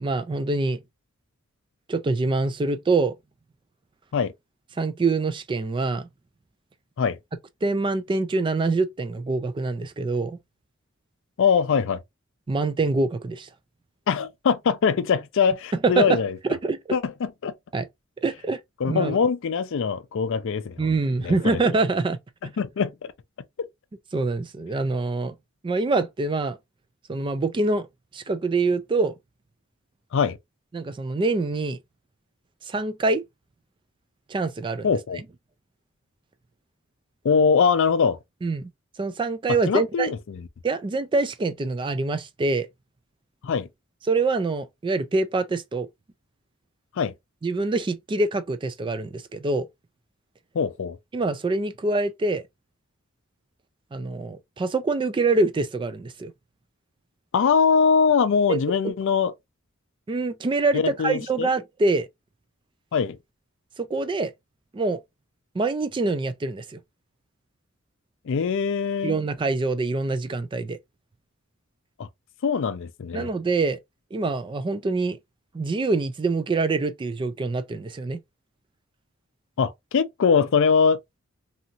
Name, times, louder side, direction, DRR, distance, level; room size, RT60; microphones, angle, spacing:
voice 1, 0.0-0.8 1.9-3.1 4.8-6.1 7.6-10.4 12.5-13.5 15.8-16.2 16.4-17.0 17.7-17.9 18.2-18.6 18.9-19.2 20.8-22.2 24.1-25.4 25.6-26.6 27.1-27.9 28.1-29.1 30.7-31.8 32.7-33.2 34.3-35.2 38.4-38.7 39.0-40.1 40.6-42.7 44.1-45.9 47.4-49.7 51.1-52.4 53.9-56.3 58.5-58.9 60.1-62.1 63.8-64.3 64.7-65.0 65.5-66.8 69.0-70.8 73.1-73.8 74.1-75.2 75.5-78.2, right 3 dB, 25° right, 0.3 m, -25 dB
voice 2, 11.4-12.0 14.1-16.3 16.9-17.5 18.8-20.8 21.2-21.6 22.4-23.1 23.6-23.7 30.1-30.4 34.8-35.2 37.2-38.2 39.7-40.4 43.4-43.7 47.0-47.1 50.5-51.0 57.3-59.3 60.7-61.5 62.9-63.2 68.3-69.2 72.0-72.1 72.4-73.3 79.6-81.0, left 6 dB, 65° left, 0.4 m, -22 dB
2.8 x 2.6 x 2.7 m
head